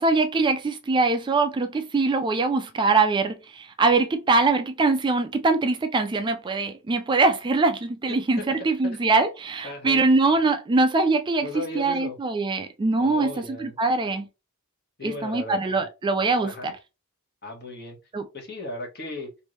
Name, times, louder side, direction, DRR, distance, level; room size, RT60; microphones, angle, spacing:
voice 1, 0.0-11.5 11.7-13.3 13.6-14.3 15.0-16.7 18.1-18.3, right 3 dB, 20° right, 0.3 m, -23 dB
voice 2, 9.6-10.0 11.4-12.2 13.0-13.8 15.0-15.9 16.4-16.7 17.4-18.0 18.3-19.3, left 2 dB, 50° left, 1.3 m, -36 dB
3.1 x 2.6 x 3.1 m
head